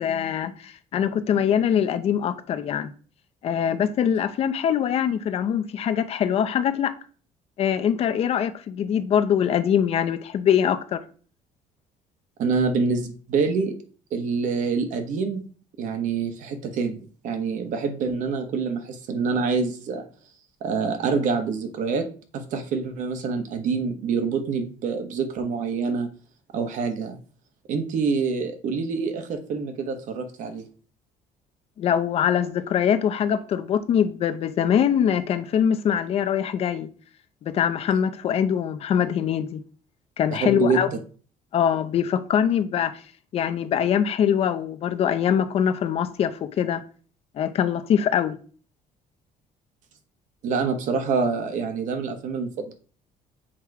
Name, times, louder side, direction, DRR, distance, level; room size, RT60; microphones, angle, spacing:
voice 1, 0.0-2.9 3.4-6.9 7.6-11.0 31.8-36.9 37.4-39.6 40.2-40.9 41.5-43.0 43.3-46.8 47.4-48.4, left 8 dB, 45° left, 0.6 m, -23 dB
voice 2, 12.4-13.7 14.1-15.4 15.8-20.0 20.6-22.1 22.3-26.1 26.5-27.2 27.7-30.7 40.4-41.0 50.4-52.7, right 5 dB, 60° right, 1.2 m, -26 dB
7.4 x 3.0 x 4.7 m
cardioid pair, 150°, 14 cm